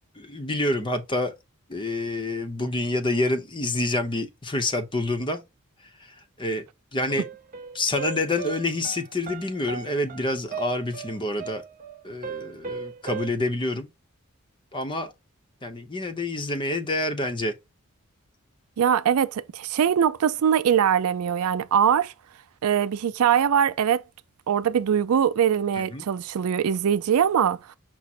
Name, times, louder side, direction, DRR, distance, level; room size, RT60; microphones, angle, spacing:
voice 1, 0.2-1.3 1.7-5.4 6.4-6.7 6.9-7.3 7.7-11.6 12.0-13.9 14.7-15.1 15.6-17.5 25.9-26.0, left 2 dB, 20° left, 0.7 m, -27 dB
sound 1, 7.1-13.3, right 6 dB, 40° right, 0.6 m, -37 dB
voice 2, 18.8-22.1 22.6-24.0 24.5-27.7, right 8 dB, 80° right, 0.4 m, -22 dB
6.1 x 2.1 x 4.2 m
head